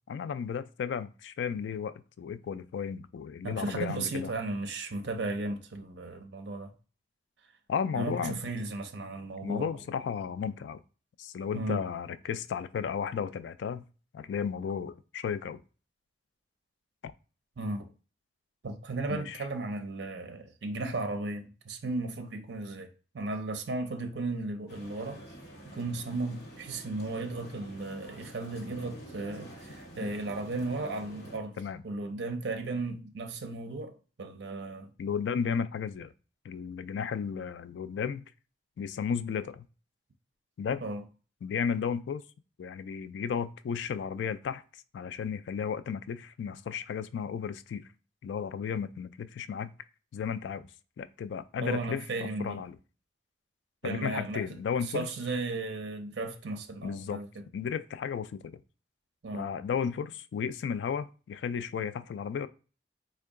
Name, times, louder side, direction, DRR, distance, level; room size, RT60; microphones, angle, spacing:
voice 1, 0.1-4.3 7.7-8.4 9.4-10.8 11.2-13.8 14.1-15.6 17.0-17.1 19.1-19.4 30.0-30.1 31.6-31.8 35.0-36.1 36.4-38.2 38.8-39.6 40.6-40.8 41.4-42.2 42.6-44.6 44.9-47.8 48.2-49.7 50.1-50.7 51.0-52.0 52.4-52.8 53.8-55.1 56.8-57.2 57.5-58.5 59.3-62.5, left 7 dB, 85° left, 0.3 m, -34 dB
voice 2, 3.4-6.7 7.9-9.7 11.5-11.8 17.6-17.9 18.6-22.9 23.1-25.2 25.7-31.6 31.8-34.9 40.8-41.0 51.6-52.6 53.8-54.6 54.8-57.3 59.2-59.5, right 2 dB, 75° right, 0.5 m, -35 dB
sound 1, 24.7-31.4, right 1 dB, 65° left, 0.9 m, -48 dB
3.6 x 2.2 x 3.5 m
head